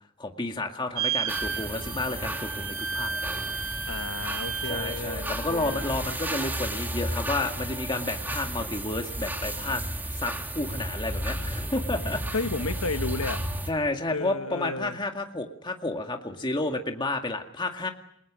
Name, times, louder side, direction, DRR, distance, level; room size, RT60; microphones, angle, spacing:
voice 1, 0.2-3.6 4.7-9.8 10.1-12.2 13.7-17.9, left 2 dB, 20° left, 2.1 m, -31 dB
sound 1, 1.0-6.0, right 7 dB, 70° right, 3.4 m, -33 dB
sound 2, 1.3-13.7, right 1 dB, 10° right, 3.0 m, -33 dB
voice 2, 3.8-5.8 12.3-13.4 14.1-15.0, left 3 dB, 75° left, 1.6 m, -32 dB
29.5 x 22.5 x 6.3 m
head